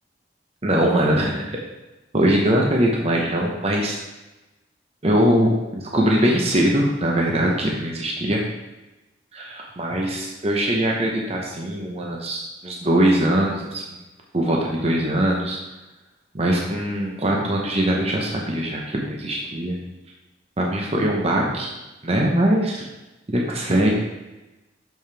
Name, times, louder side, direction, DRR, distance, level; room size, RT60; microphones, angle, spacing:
voice 1, 0.6-1.6 2.1-4.0 5.0-8.4 9.3-13.8 14.3-15.6 16.3-19.8 20.6-21.7 22.0-22.9 23.3-24.0, right 1 dB, 35° right, -1 dB, 0.9 m, -21 dB
6.8 x 6.2 x 3.4 m, 1.1 s
head